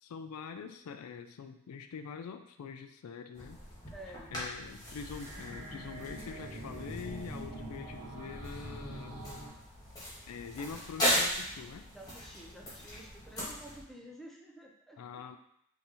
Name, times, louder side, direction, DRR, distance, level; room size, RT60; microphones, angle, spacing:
voice 1, 0.0-3.6 4.3-9.2 10.3-11.9 15.0-15.4, left 6 dB, 85° left, 8 dB, 0.3 m, -44 dB
sound 1, 3.3-13.8, left 1 dB, 15° left, 1.5 m, -38 dB
voice 2, 3.9-4.4 11.9-15.2, right 1 dB, ahead, 0 dB, 0.5 m, -51 dB
sound 2, 4.6-9.5, right 1 dB, 50° right, 1.4 m, -44 dB
5.4 x 2.7 x 3.0 m, 0.74 s
head